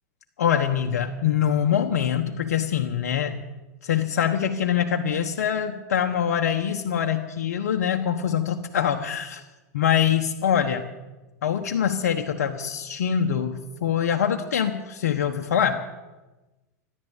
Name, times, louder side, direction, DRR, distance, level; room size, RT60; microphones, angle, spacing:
voice 1, 0.4-3.4 3.8-9.4 9.7-10.8 11.4-15.8, left 8 dB, 80° left, 4 dB, 1.2 m, -24 dB
14.5 x 11.0 x 8.2 m, 1.1 s
hypercardioid pair, 105°, 9 cm